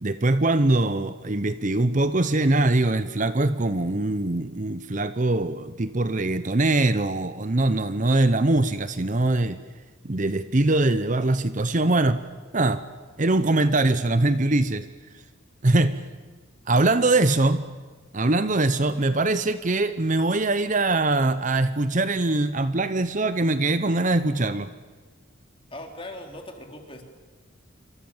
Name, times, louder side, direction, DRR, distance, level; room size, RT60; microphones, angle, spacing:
voice 1, 0.0-9.6 10.0-12.2 12.5-12.8 13.2-14.9 15.6-16.0 16.7-17.7 18.1-24.7, right 2 dB, 35° right, 12 dB, 0.8 m, -22 dB
voice 2, 25.7-27.0, left 1 dB, 25° left, 3 dB, 3.5 m, -39 dB
27.5 x 25.0 x 7.3 m, 1.4 s
head